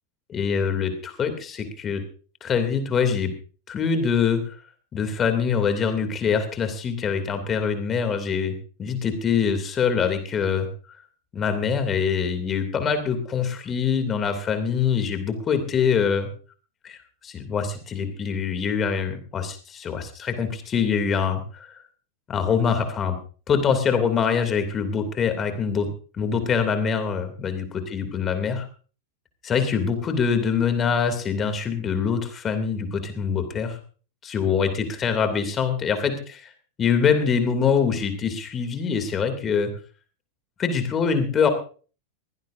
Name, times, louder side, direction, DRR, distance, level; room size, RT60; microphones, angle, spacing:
voice 1, 0.3-2.0 2.4-3.3 3.7-4.6 4.9-10.7 11.3-16.3 16.8-17.0 17.2-21.8 22.3-23.2 23.5-25.9 26.2-27.6 27.9-28.7 29.4-33.8 34.2-36.5 36.8-39.7 40.6-41.5, left 6 dB, 25° left, 8 dB, 2.7 m, -24 dB
22.5 x 16.5 x 2.6 m, 0.39 s
figure-of-eight pair, 90°, 0 cm